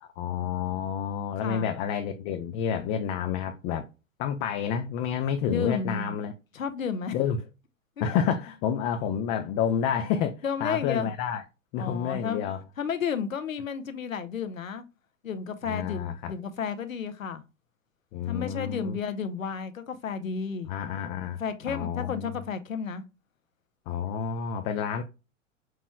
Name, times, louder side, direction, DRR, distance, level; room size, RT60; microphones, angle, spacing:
voice 1, 0.0-3.9 4.2-6.3 7.1-7.4 8.0-11.4 11.7-12.6 15.7-16.3 18.1-19.0 20.6-21.4 21.7-22.4 23.9-25.0, left 8 dB, 25° left, 0.4 m, -29 dB
voice 2, 1.4-1.7 5.5-6.1 6.5-7.1 8.0-8.1 10.4-11.1 11.8-12.4 12.8-14.8 15.2-17.4 18.3-20.7 21.3-23.0, left 6 dB, 85° left, 0.8 m, -32 dB
6.0 x 3.0 x 2.2 m
hypercardioid pair, 105°, 39 cm